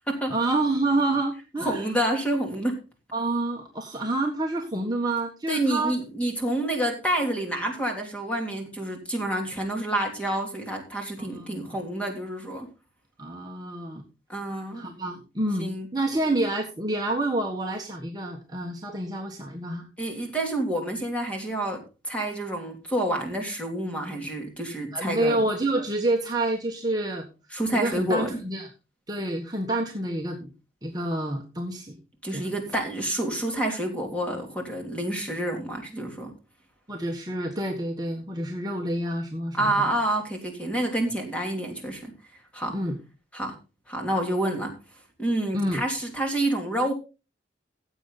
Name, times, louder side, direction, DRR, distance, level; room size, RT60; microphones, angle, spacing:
voice 1, 0.3-1.9 3.1-5.9 11.2-11.8 13.2-14.0 14.7-19.9 24.9-27.3 27.7-28.7 29.1-30.5 30.8-32.0 32.3-32.5 36.9-39.9 42.7-43.0 45.5-45.8, right 2 dB, 20° right, 1 dB, 1.4 m, -28 dB
voice 2, 1.6-2.8 5.5-12.7 14.3-14.8 15.6-15.9 20.0-25.4 27.5-28.4 32.2-36.3 39.6-42.1 42.5-42.7 43.3-43.5 43.9-44.7 45.2-46.9, right 1 dB, 5° left, 2 dB, 3.1 m, -28 dB
15.5 x 7.9 x 4.0 m, 0.31 s
head